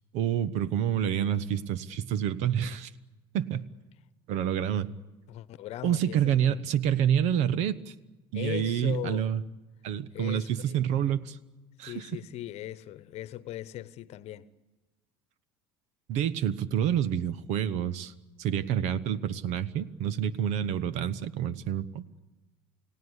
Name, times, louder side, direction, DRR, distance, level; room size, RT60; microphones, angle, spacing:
voice 1, 0.1-2.9 3.3-3.6 4.3-4.9 5.8-7.9 8.3-9.4 9.8-11.4 11.8-12.1 16.1-18.1 18.4-22.0, right 9 dB, 65° right, 1.1 m, -28 dB
voice 2, 5.3-6.6 8.3-9.3 10.1-10.8 11.9-14.5, left 14 dB, 55° left, 1.1 m, -39 dB
29.5 x 17.0 x 8.2 m
hypercardioid pair, 70°, 13 cm